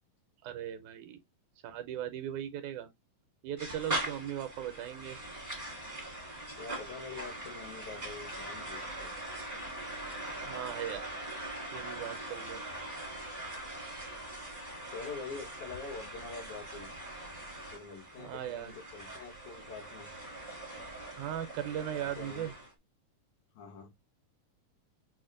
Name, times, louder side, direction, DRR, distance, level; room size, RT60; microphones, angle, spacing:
voice 1, 0.4-1.2 1.6-2.9 3.4-5.2 10.4-11.2 11.7-12.6 18.2-18.8 21.1-22.5, right 10 dB, 80° right, 2.0 m, -38 dB
sound 1, 3.6-22.7, right 1 dB, 30° right, 0.6 m, -42 dB
voice 2, 6.6-9.2 14.9-16.9 17.7-20.1 22.0-22.6 23.5-23.9, left 5 dB, 75° left, 2.6 m, -45 dB
6.2 x 2.1 x 2.4 m
omnidirectional pair, 3.4 m